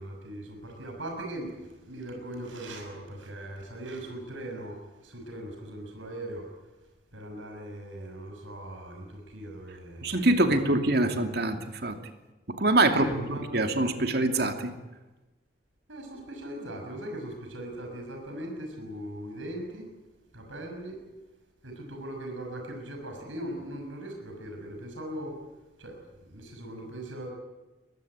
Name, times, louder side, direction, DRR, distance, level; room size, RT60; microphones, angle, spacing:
voice 1, 0.0-6.5 7.1-10.5 11.0-11.2 12.9-13.7 15.9-19.9 20.3-21.0 21.6-25.4 25.8-27.3, right 1 dB, 80° right, 2 dB, 6.3 m, -39 dB
voice 2, 10.0-12.0 12.5-14.7, right 2 dB, 55° right, 6 dB, 2.6 m, -25 dB
23.5 x 21.5 x 8.9 m, 1.1 s
head